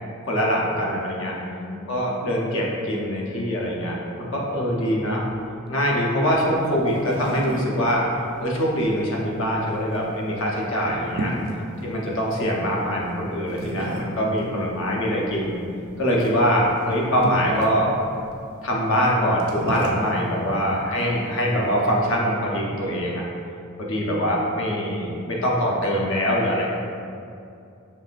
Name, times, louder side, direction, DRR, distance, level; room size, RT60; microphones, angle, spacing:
voice 1, 0.3-1.3 1.9-5.2 5.7-8.0 8.4-11.3 11.8-15.5 16.0-17.9 18.6-23.2 23.8-26.7, equal, 65° left, -3 dB, 0.7 m, -23 dB
voice 2, 1.3-2.0 11.2-11.9 20.1-21.3 23.9-24.3, left 1 dB, ahead, -4 dB, 0.4 m, -40 dB
sound 1, 6.3-22.2, right 1 dB, 75° right, 0.5 m, -36 dB
5.5 x 3.3 x 2.5 m, 2.5 s
head